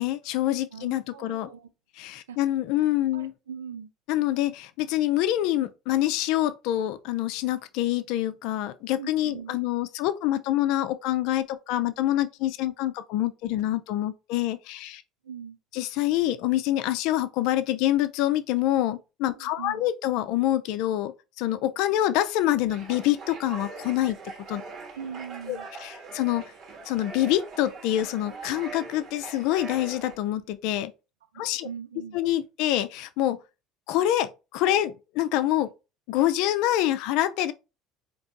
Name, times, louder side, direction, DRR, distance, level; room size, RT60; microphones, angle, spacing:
voice 1, 0.0-1.5 2.0-3.3 4.1-15.0 15.7-24.2 24.5-24.6 25.5-26.5 26.9-30.9 31.4-31.7 32.1-33.4 33.9-35.7 36.1-37.5, left 13 dB, 65° left, 0.4 m, -26 dB
voice 2, 0.7-1.7 2.3-2.4 2.8-3.9 9.0-9.6 15.2-15.6 19.3-19.8 24.9-25.7 31.3-32.2, right 7 dB, 85° right, 0.4 m, -41 dB
sound 1, 22.7-30.2, right 4 dB, 50° right, 1.5 m, -42 dB
4.3 x 2.9 x 2.9 m
hypercardioid pair, 70°, 0 cm